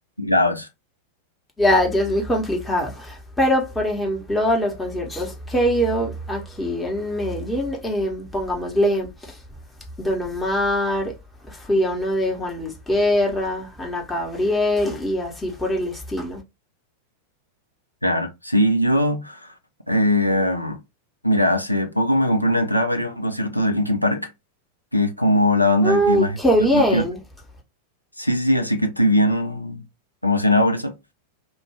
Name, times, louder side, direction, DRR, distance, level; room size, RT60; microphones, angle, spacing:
voice 1, 0.2-0.7 18.0-19.5 19.9-20.8 21.2-24.3 24.9-26.4 26.7-27.0 28.2-29.8 30.2-30.9, left 1 dB, 90° left, 0.5 m, -20 dB
voice 2, 1.6-9.4 10.0-11.1 11.5-16.4 25.8-27.2, equal, 10° left, 0.9 m, -22 dB
2.5 x 2.2 x 3.2 m
figure-of-eight pair, 90°, 0 cm